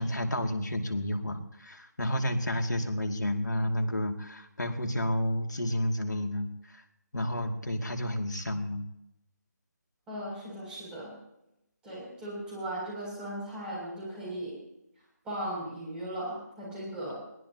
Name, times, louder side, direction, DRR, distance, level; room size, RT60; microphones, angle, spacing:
voice 1, 0.0-6.8 7.1-8.8, left 1 dB, 75° left, 6 dB, 2.5 m, -31 dB
voice 2, 10.1-11.1 11.8-14.6 15.2-17.1, right 1 dB, 10° right, -5 dB, 6.9 m, -37 dB
21.5 x 16.5 x 2.9 m, 0.86 s
figure-of-eight pair, 155°, 10 cm